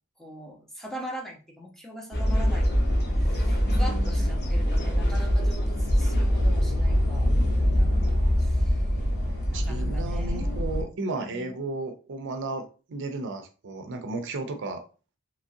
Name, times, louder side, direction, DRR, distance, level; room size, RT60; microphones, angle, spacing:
voice 1, 0.2-2.9 3.2-8.9 9.5-10.9 11.1-11.5, equal, ahead, -2 dB, 0.5 m, -42 dB
sound 1, 2.1-10.8, equal, 50° left, 0.9 m, -24 dB
voice 2, 3.7-4.6 9.5-14.8, right 2 dB, 60° right, 7 dB, 0.5 m, -34 dB
Engine, 4.2-10.2, left 2 dB, 85° left, 1.5 m, -32 dB
2.9 x 2.6 x 2.6 m, 0.35 s
head